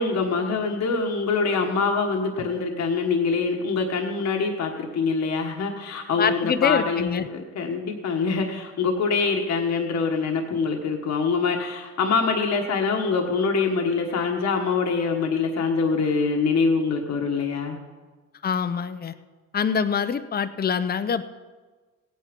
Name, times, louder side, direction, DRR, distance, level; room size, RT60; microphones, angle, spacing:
voice 1, 0.0-17.8, left 4 dB, 60° left, 2 dB, 1.4 m, -24 dB
voice 2, 6.2-7.3 18.4-19.1 19.5-21.3, left 6 dB, 30° left, 12 dB, 0.7 m, -25 dB
17.0 x 9.3 x 5.2 m, 1.3 s
cardioid pair, 90°, 30 cm